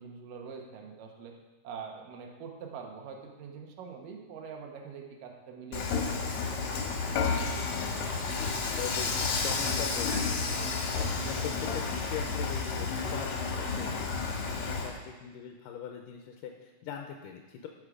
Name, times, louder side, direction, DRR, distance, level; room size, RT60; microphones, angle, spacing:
voice 1, 0.0-1.3 1.6-6.5 14.3-14.7, right 6 dB, 80° right, 1 dB, 2.7 m, -44 dB
Dishes pots and pans / Frying (food), 5.7-14.9, left 4 dB, 65° left, 2.5 m, -31 dB
voice 2, 7.7-10.7 11.1-14.1 14.5-17.7, left 7 dB, 85° left, 3 dB, 2.3 m, -41 dB
13.0 x 6.4 x 4.9 m, 1.2 s
omnidirectional pair, 3.8 m